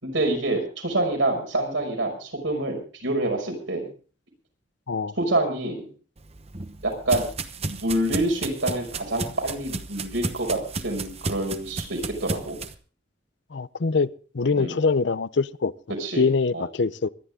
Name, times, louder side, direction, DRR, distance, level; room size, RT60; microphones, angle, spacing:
voice 1, 0.0-3.9 5.1-5.9 6.8-7.2 7.6-12.6 14.6-14.8 15.9-16.6, right 2 dB, 80° right, 5.7 m, -27 dB
sound 1, 6.2-12.7, right 3 dB, 35° right, 1.0 m, -33 dB
voice 2, 13.5-15.7 16.2-17.1, left 4 dB, 65° left, 0.6 m, -24 dB
24.0 x 11.0 x 3.6 m
head